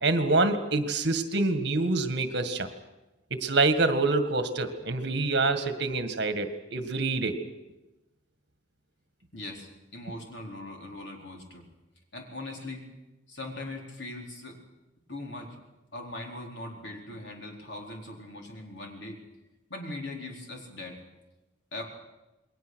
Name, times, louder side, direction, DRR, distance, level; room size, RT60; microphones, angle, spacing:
voice 1, 0.0-2.7 3.3-7.4, right 3 dB, 60° right, 9 dB, 1.8 m, -26 dB
voice 2, 9.3-11.7 12.1-12.8 13.3-14.6 15.1-15.6 15.9-19.2 19.7-21.0 21.7-21.8, left 2 dB, 60° left, 1 dB, 4.3 m, -40 dB
28.5 x 21.5 x 6.4 m, 1.0 s
head